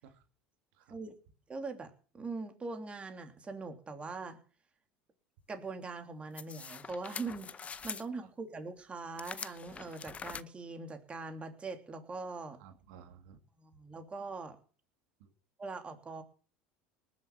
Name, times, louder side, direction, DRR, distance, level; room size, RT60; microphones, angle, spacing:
voice 1, 1.5-4.4 5.5-12.6 13.6-14.6 15.6-16.2, right 3 dB, 25° right, 5 dB, 3.1 m, -42 dB
sound 1, 6.4-8.1 9.2-10.4, left 6 dB, 30° left, 0.7 m, -44 dB
voice 2, 12.6-13.4 15.2-15.3, right 7 dB, 75° right, 6 dB, 2.1 m, -55 dB
19.5 x 7.5 x 7.4 m, 0.41 s
hypercardioid pair, 90°, 5 cm